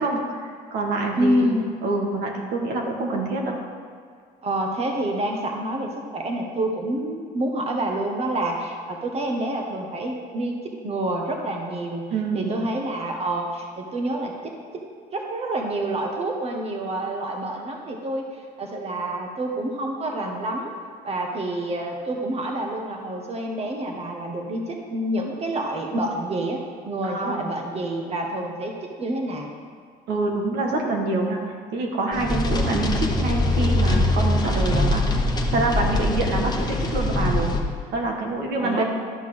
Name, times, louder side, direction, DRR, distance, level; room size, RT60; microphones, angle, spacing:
voice 1, 0.0-1.5 1.8-3.6 12.1-12.5 27.0-27.4 30.1-31.4 31.7-35.0 35.5-37.5 37.9-38.8, right 2 dB, 75° right, 1 dB, 1.6 m, -26 dB
voice 2, 1.1-1.7 4.4-12.1 12.3-14.3 15.1-20.7 21.0-29.5 38.6-38.8, right 1 dB, 35° right, 1 dB, 1.4 m, -28 dB
sound 1, 32.1-37.6, left 1 dB, 25° left, 1.3 m, -22 dB
12.0 x 5.7 x 6.2 m, 2.1 s
cardioid pair, 100°, 17 cm